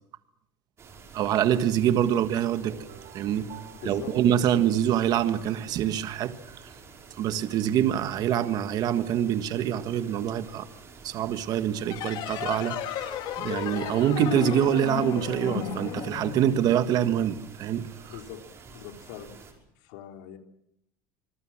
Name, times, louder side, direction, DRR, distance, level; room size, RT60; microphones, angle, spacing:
sound 1, 0.8-19.5, right 5 dB, 30° right, 5.6 m, -49 dB
voice 1, 1.1-2.8 3.1-3.5 3.8-6.3 7.2-10.7 11.0-17.9, right 10 dB, 45° right, 1.6 m, -25 dB
sound 2, 2.4-5.5, right 10 dB, 75° right, 3.9 m, -51 dB
voice 2, 3.5-4.8 18.1-18.4 18.7-19.3 19.8-20.4, left 9 dB, 80° left, 3.5 m, -43 dB
sound 3, 11.9-17.1, left 10 dB, 50° left, 2.3 m, -34 dB
26.5 x 21.5 x 7.4 m
cardioid pair, 150°, 9 cm